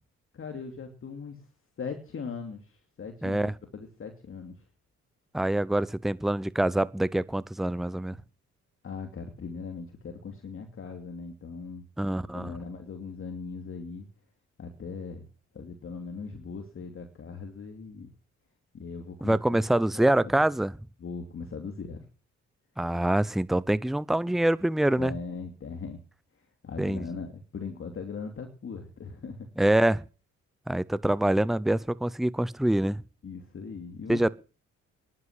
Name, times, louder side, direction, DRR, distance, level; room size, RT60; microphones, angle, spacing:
voice 1, 0.3-1.5 1.8-4.6 8.8-11.9 12.2-14.1 14.6-15.3 15.5-18.1 18.7-19.6 19.9-20.1 21.0-22.1 25.0-26.0 26.6-29.5 33.2-34.3, left 5 dB, 45° left, 2.7 m, -39 dB
voice 2, 3.2-3.5 5.3-8.2 12.0-12.6 19.2-20.7 22.8-25.1 26.8-27.1 29.6-30.0 30.7-33.0 34.1-34.3, right 1 dB, ahead, 0.6 m, -25 dB
11.0 x 9.6 x 9.9 m
cardioid pair, 90°, 30 cm